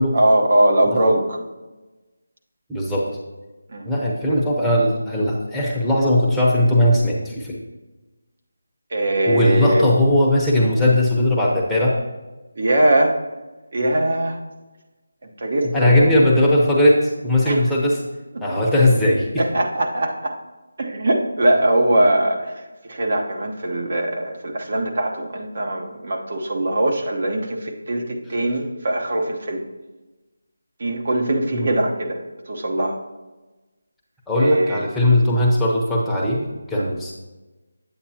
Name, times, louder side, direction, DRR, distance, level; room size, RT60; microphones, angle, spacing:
voice 1, 0.1-1.4 3.7-3.9 8.9-9.9 12.6-13.2 13.7-14.4 15.4-16.1 17.4-17.6 18.3-18.4 19.4-20.4 20.8-29.6 30.8-33.0 34.3-34.9 36.7-36.9, right 1 dB, 50° right, 1 dB, 1.0 m, -21 dB
voice 2, 2.7-3.1 3.8-7.6 9.3-12.0 15.7-18.0 18.4-19.4 31.5-31.7 34.3-37.1, left 1 dB, 5° left, -7 dB, 0.8 m, -18 dB
8.5 x 8.3 x 2.8 m, 1.2 s
figure-of-eight pair, 160°, 0 cm